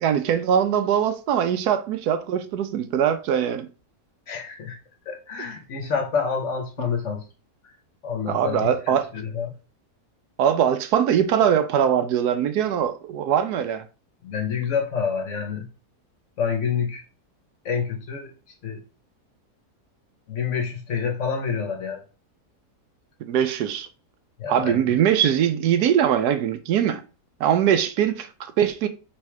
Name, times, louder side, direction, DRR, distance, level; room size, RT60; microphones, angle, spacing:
voice 1, 0.0-3.7 8.3-9.1 10.4-13.8 23.2-23.9 24.5-27.0 27.4-28.9, right 9 dB, 80° right, 1.1 m, -22 dB
voice 2, 4.3-4.8 5.1-7.2 8.0-9.5 14.2-15.7 16.4-17.0 17.6-18.3 18.6-18.8 20.3-22.0 24.4-24.9, left 6 dB, 55° left, 1.0 m, -28 dB
3.5 x 3.2 x 4.6 m
omnidirectional pair, 1.7 m